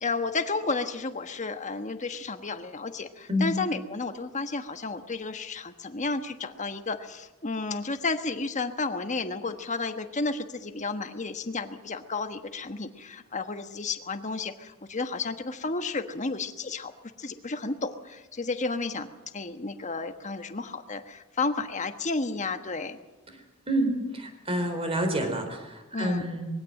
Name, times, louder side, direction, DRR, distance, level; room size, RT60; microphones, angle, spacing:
voice 1, 0.0-16.9 17.2-19.1 19.3-23.0 25.9-26.3, left 3 dB, 35° left, 8 dB, 1.3 m, -32 dB
voice 2, 23.7-26.5, equal, 25° right, 6 dB, 3.9 m, -28 dB
22.0 x 16.5 x 7.7 m, 1.1 s
head